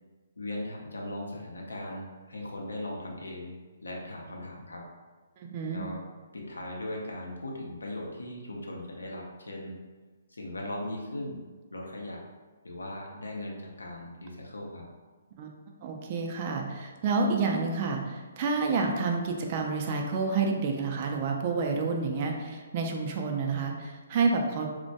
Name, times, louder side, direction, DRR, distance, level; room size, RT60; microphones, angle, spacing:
voice 1, 0.4-4.8 5.7-6.1 6.3-9.8 10.3-11.4 11.7-12.2 12.6-14.9, left 1 dB, 85° left, -1 dB, 0.5 m, -38 dB
voice 2, 5.4-5.9 15.4-15.5 15.8-24.7, right 4 dB, 40° right, 2 dB, 0.3 m, -29 dB
2.1 x 2.1 x 2.7 m, 1.4 s
hypercardioid pair, 140°, 0 cm